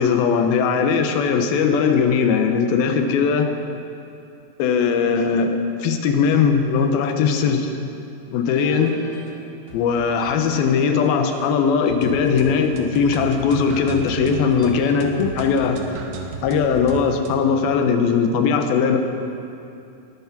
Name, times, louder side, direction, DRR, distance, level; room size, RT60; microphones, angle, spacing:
voice 1, 0.0-3.5 4.6-7.7 8.3-9.0 9.7-15.8 16.4-19.0, left 6 dB, 80° left, 6 dB, 2.8 m, -19 dB
sound 1, 8.4-15.6, equal, 55° left, 0.6 m, -44 dB
sound 2, 12.0-17.4, right 3 dB, 75° right, 1.4 m, -34 dB
20.0 x 9.5 x 5.9 m, 2.7 s
omnidirectional pair, 4.3 m